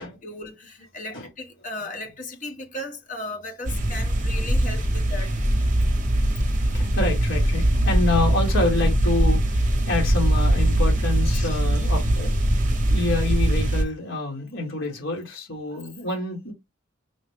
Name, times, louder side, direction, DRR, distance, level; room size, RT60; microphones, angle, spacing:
voice 1, 0.2-5.4 11.3-11.6, left 2 dB, 40° left, 1.1 m, -36 dB
sound 1, 3.6-13.8, right 1 dB, 40° right, 0.8 m, -21 dB
voice 2, 6.7-9.6 9.9-12.3 12.9-16.5, left 2 dB, 70° left, 1.6 m, -27 dB
6.2 x 2.2 x 3.4 m
head